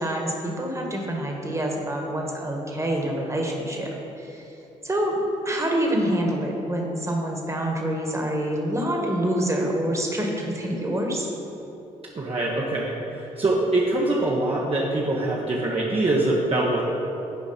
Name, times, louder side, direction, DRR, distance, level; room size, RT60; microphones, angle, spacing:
voice 1, 0.0-3.9 4.2-4.4 4.8-5.2 5.4-11.3, right 1 dB, 20° right, 0 dB, 1.6 m, -26 dB
voice 2, 12.1-16.8, right 2 dB, 35° right, -5 dB, 1.1 m, -24 dB
10.5 x 4.7 x 4.4 m, 3.0 s
hypercardioid pair, 50°, 16 cm